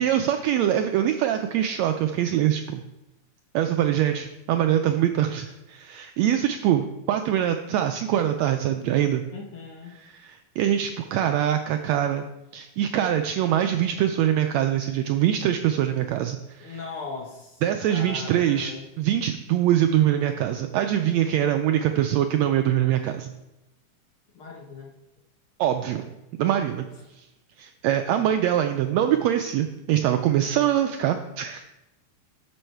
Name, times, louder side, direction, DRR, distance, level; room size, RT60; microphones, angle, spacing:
voice 1, 0.0-2.8 3.5-9.2 10.0-12.2 12.5-16.8 17.6-23.3 25.6-26.1 26.4-26.9 27.2-27.3 27.6-31.6, right 11 dB, 80° right, 7 dB, 1.6 m, -23 dB
voice 2, 9.3-10.0 16.6-17.6 17.9-18.8 24.3-24.9, left 4 dB, 55° left, -1 dB, 1.7 m, -38 dB
12.0 x 6.2 x 4.5 m, 0.98 s
omnidirectional pair, 3.5 m